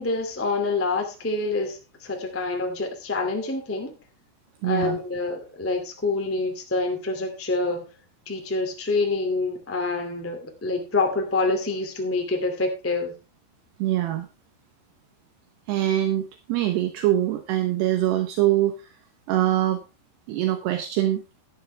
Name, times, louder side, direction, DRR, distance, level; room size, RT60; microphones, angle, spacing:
voice 1, 0.0-3.9 4.6-7.8 8.2-13.1, left 3 dB, 15° left, 3 dB, 0.5 m, -26 dB
voice 2, 4.6-5.0 13.8-14.3 15.7-19.0 19.3-19.8 20.3-21.2, right 13 dB, 75° right, 7 dB, 3.0 m, -23 dB
12.5 x 11.5 x 3.4 m, 0.29 s
omnidirectional pair, 5.1 m